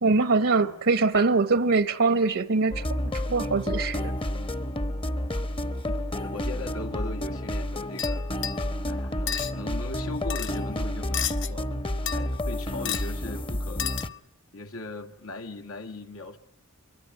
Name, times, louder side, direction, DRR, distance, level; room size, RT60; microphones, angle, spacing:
voice 1, 0.0-4.1, right 3 dB, 65° right, 1.0 m, -23 dB
sound 1, 2.7-14.1, left 1 dB, 25° left, 1.0 m, -30 dB
voice 2, 5.9-8.3 8.9-11.8 12.1-13.9 14.5-16.4, left 2 dB, 80° left, 1.9 m, -39 dB
sound 2, 8.0-8.7 9.3-9.5 10.3-10.6 11.1-11.5 12.1-12.5 12.8-13.1 13.8-14.2, left 10 dB, 60° left, 1.4 m, -32 dB
25.0 x 23.5 x 9.6 m
head